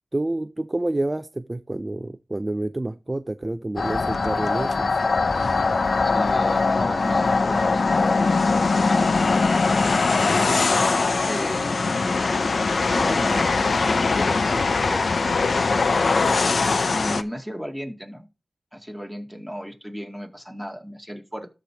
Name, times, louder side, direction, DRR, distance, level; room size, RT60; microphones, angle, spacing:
voice 1, 0.1-5.0 10.1-10.7, right 2 dB, 30° right, 0.4 m, -29 dB
sound 1, 3.8-17.2, left 4 dB, 75° left, 0.6 m, -21 dB
voice 2, 6.0-9.2 11.3-12.3 12.9-15.1 16.9-18.3 18.7-21.5, equal, ahead, 2.1 m, -35 dB
13.0 x 4.7 x 3.4 m
cardioid pair, 50°, 0 cm